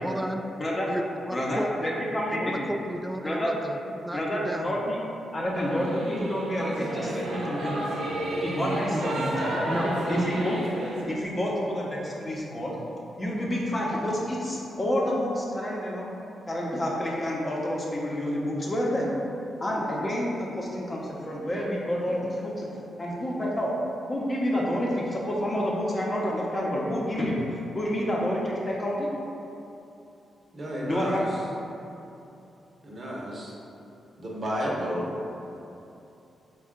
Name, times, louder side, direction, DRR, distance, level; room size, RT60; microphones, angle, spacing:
voice 1, 0.0-0.4 0.9-2.0 2.3-4.8 8.9-9.2 9.7-10.0, equal, 5° right, 5 dB, 0.3 m, -33 dB
voice 2, 1.3-2.5 3.2-3.5 4.1-5.0 5.3-7.9 8.4-10.6 11.1-12.7 13.2-16.1 16.5-19.1 19.6-23.7 24.1-27.4 27.7-29.1 30.8-31.2, equal, 35° left, -3 dB, 0.9 m, -29 dB
Singing / Musical instrument, 5.5-11.0, right 1 dB, 90° right, 0.6 m, -31 dB
voice 3, 30.5-31.3 32.8-33.6 34.2-35.2, equal, 50° right, -4 dB, 0.8 m, -31 dB
4.2 x 2.4 x 3.7 m, 2.8 s
supercardioid pair, 60°, 0 cm